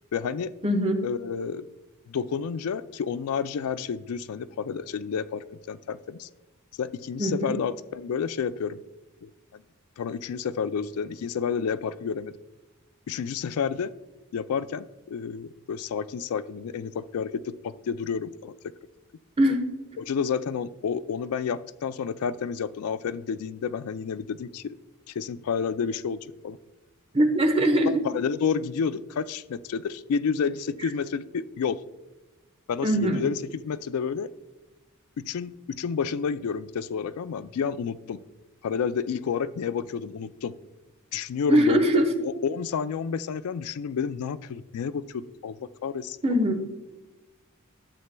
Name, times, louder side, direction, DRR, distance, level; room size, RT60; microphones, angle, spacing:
voice 1, 0.1-0.5 1.0-1.6 2.1-6.3 6.8-8.8 9.2-9.6 10.0-12.3 13.1-13.9 14.3-18.5 20.0-24.8 25.2-26.6 27.9-31.8 32.7-34.3 35.2-38.2 38.6-40.5 41.1-41.9 42.2-46.2, left 6 dB, 80° left, 16 dB, 0.4 m, -30 dB
voice 2, 0.6-1.0 7.2-7.5 19.4-19.6 19.9-20.0 27.1-28.0 32.8-33.2 41.5-42.1 46.2-46.6, right 1 dB, 25° right, 5 dB, 1.0 m, -22 dB
12.5 x 8.0 x 2.2 m, 1.1 s
head